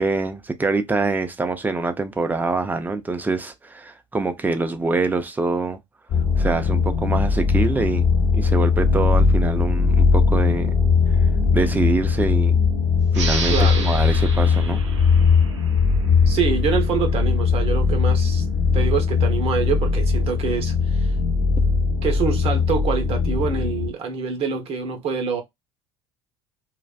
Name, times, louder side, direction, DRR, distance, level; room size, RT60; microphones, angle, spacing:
voice 1, 0.0-5.8 6.4-10.7 11.5-12.6 13.1-14.8, right 3 dB, 10° right, 0.5 m, -25 dB
sound 1, 6.1-23.9, left 5 dB, 40° left, 0.8 m, -19 dB
sound 2, 13.1-16.4, right 4 dB, 80° right, 0.6 m, -31 dB
voice 2, 13.5-13.9 16.3-18.4 18.7-21.1 22.0-25.4, right 6 dB, 40° right, 0.8 m, -25 dB
2.4 x 2.2 x 2.3 m
figure-of-eight pair, 70°, 15 cm